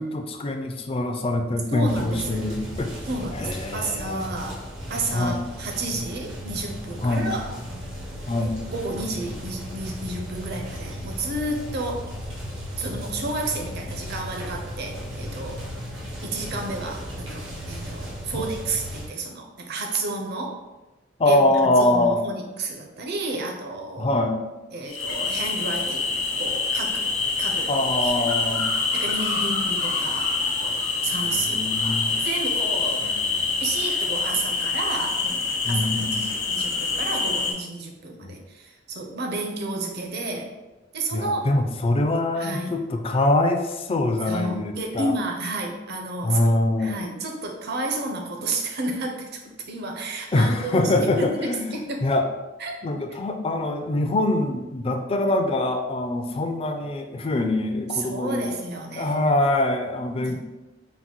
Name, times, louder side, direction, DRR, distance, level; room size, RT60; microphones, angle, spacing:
voice 1, 0.0-2.9 3.3-4.2 5.1-5.4 7.0-7.3 8.3-8.6 18.3-18.4 21.2-22.2 24.0-24.4 27.7-28.8 31.1-32.2 33.0-33.2 35.6-36.3 38.2-38.4 41.1-45.1 46.2-47.0 50.3-52.3 52.8-58.6 59.0-60.4, left 2 dB, 30° left, 5 dB, 0.4 m, -24 dB
voice 2, 1.7-2.5 3.1-4.6 4.9-7.5 8.7-12.1 12.8-15.6 16.2-20.6 21.2-21.4 21.8-24.2 24.7-27.1 27.4-27.7 28.0-28.2 28.7-30.8 31.0-33.1 33.6-40.5 40.9-41.4 42.4-42.8 44.3-49.4 49.7-52.0 52.6-52.8 57.9-59.3 60.3-60.4, right 2 dB, 55° right, 2 dB, 0.6 m, -31 dB
sound 1, 1.9-19.1, equal, 85° right, 1.2 m, -36 dB
sound 2, 24.9-37.5, left 4 dB, 80° left, 0.9 m, -26 dB
4.0 x 2.2 x 4.3 m, 1.1 s
head